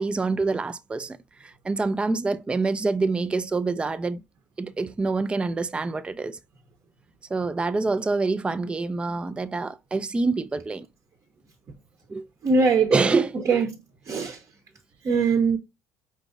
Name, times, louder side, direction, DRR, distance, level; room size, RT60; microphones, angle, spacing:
voice 1, 0.0-4.2 4.6-6.4 7.3-10.9 12.1-12.3 12.9-13.6, right 3 dB, 15° right, 0.3 m, -26 dB
voice 2, 12.4-12.9 13.3-14.4 15.0-15.6, right 4 dB, 40° right, 0.9 m, -22 dB
5.0 x 3.1 x 2.5 m
supercardioid pair, 90°, 8 cm